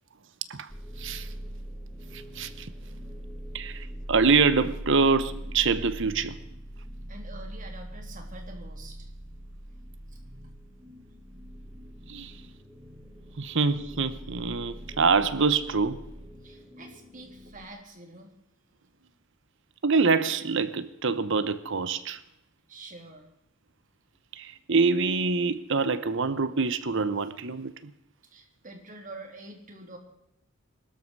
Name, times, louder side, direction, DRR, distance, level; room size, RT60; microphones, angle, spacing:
sound 1, 0.7-17.7, right 1 dB, ahead, 2.2 m, -42 dB
voice 1, 1.0-1.3 2.1-2.7 3.5-6.4 12.1-12.3 13.4-16.0 19.8-22.2 24.3-27.9, right 4 dB, 60° right, 1.0 m, -25 dB
voice 2, 7.1-9.1 10.1-10.2 13.4-13.5 16.4-18.3 22.7-23.3 28.2-30.0, right 2 dB, 40° right, 3.3 m, -46 dB
22.5 x 13.0 x 4.8 m
head